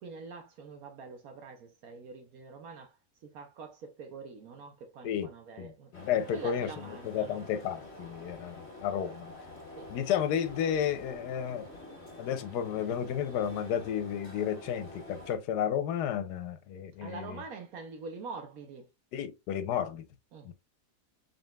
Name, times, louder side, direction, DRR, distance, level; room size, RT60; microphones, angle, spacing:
voice 1, 0.0-3.0 3.2-5.9 6.3-7.4 9.8-9.9 17.0-18.9 20.3-20.5, right 4 dB, 70° right, 1.1 m, -45 dB
voice 2, 5.6-6.7 7.0-9.3 9.9-11.7 12.2-17.4 19.1-20.0 20.4-20.5, left 9 dB, 90° left, 1.2 m, -32 dB
sound 1, 5.9-15.4, left 1 dB, 45° left, 1.5 m, -48 dB
3.8 x 3.8 x 2.2 m
omnidirectional pair, 1.7 m